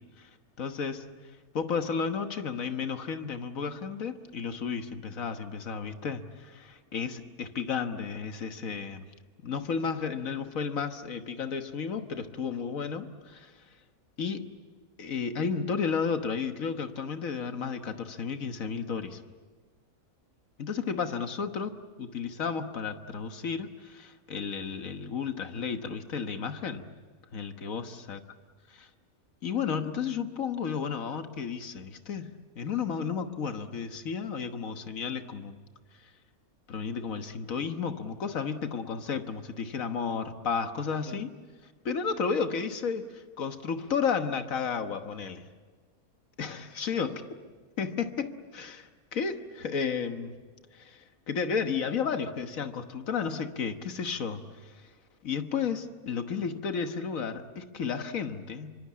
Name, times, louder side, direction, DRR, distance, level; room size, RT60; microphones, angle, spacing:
voice 1, 0.6-1.1 1.5-9.1 9.4-13.5 14.2-14.5 15.0-19.2 20.6-21.7 22.0-26.8 27.3-28.2 28.7-28.9 29.4-32.3 32.5-35.5 36.7-41.3 41.8-45.5 46.4-47.2 47.8-50.4 50.7-54.8 55.2-58.8, left 6 dB, 65° left, 8 dB, 1.7 m, -33 dB
25.5 x 24.5 x 8.5 m, 1.4 s
omnidirectional pair, 1.5 m